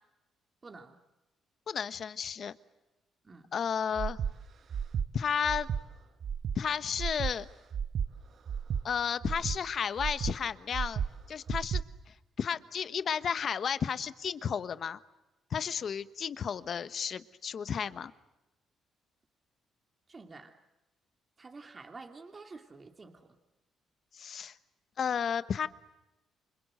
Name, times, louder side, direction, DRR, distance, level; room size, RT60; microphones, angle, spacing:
voice 1, 0.6-1.0 3.2-3.5 20.1-20.6 21.4-23.3, right 3 dB, 30° right, 5 dB, 2.8 m, -49 dB
voice 2, 1.7-2.5 3.5-4.2 5.1-5.7 6.5-7.5 8.8-11.0 11.3-11.8 12.4-15.0 15.5-18.1 24.1-24.5 25.0-25.7, left 7 dB, 55° left, 14 dB, 1.2 m, -32 dB
Breathing, 3.9-4.3 4.7-5.1 5.4-5.8 6.2-6.6 7.0-7.3 7.7-8.1 8.5-8.8 9.2-9.6 10.0-10.3 10.7-11.1 11.5-11.8, right 7 dB, 60° right, 1.3 m, -33 dB
29.0 x 25.0 x 8.0 m, 1.0 s
cardioid pair, 90°, 0 cm